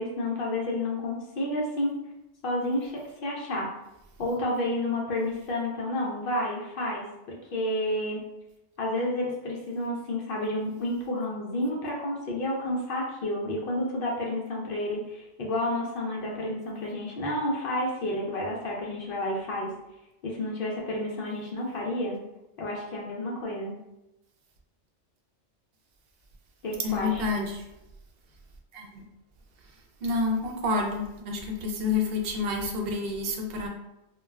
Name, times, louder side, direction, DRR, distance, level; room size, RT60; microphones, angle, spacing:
voice 1, 0.0-2.0 2.4-3.7 4.2-8.3 8.8-19.7 20.2-22.2 22.6-23.8 26.6-27.3, left 1 dB, 60° left, -2 dB, 0.6 m, -30 dB
voice 2, 26.8-27.6 28.7-29.0 30.0-33.7, left 3 dB, 65° right, 1 dB, 0.7 m, -29 dB
2.2 x 2.2 x 3.2 m, 0.93 s
omnidirectional pair, 1.2 m